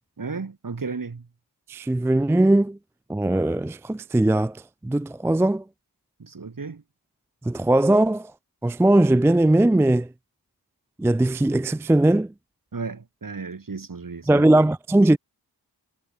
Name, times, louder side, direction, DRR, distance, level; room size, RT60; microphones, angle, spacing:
voice 1, 0.2-1.3 6.2-6.8 12.7-14.5, right 4 dB, 55° right, 2.3 m, -34 dB
voice 2, 1.7-2.8 3.1-4.6 4.8-5.6 7.5-8.3 8.6-10.1 11.0-12.3 14.3-15.2, right 1 dB, 5° right, 0.3 m, -19 dB
cardioid pair, 45°, 39 cm